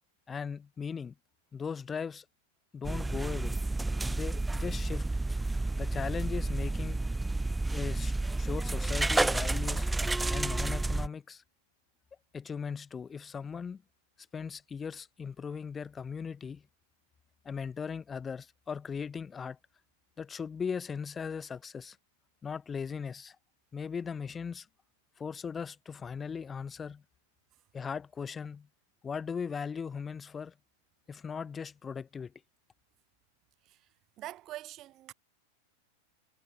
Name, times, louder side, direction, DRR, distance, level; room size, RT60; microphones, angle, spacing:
voice 1, 0.3-1.1 1.5-2.2 2.7-3.6 4.1-5.1 5.7-7.0 7.7-9.9 10.3-11.4 12.3-13.8 14.3-16.6 17.4-19.6 20.2-22.0 22.4-23.4 23.7-24.7 25.2-27.0 27.7-28.7 29.0-30.5 31.1-32.3, left 6 dB, 20° left, 2.6 m, -38 dB
sound 1, 2.8-11.1, right 2 dB, 5° right, 0.6 m, -30 dB
voice 2, 34.2-35.1, right 14 dB, 35° right, 5.5 m, -44 dB
figure-of-eight pair, 90°, 0 cm